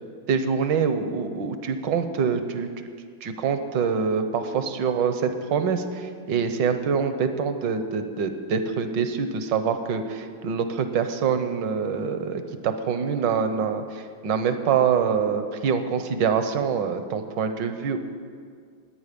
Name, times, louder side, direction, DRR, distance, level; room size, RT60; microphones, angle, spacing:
voice 1, 0.3-2.7 3.2-18.0, right 6 dB, 70° right, 8 dB, 1.6 m, -25 dB
21.0 x 8.9 x 5.2 m, 2.1 s
omnidirectional pair, 2.1 m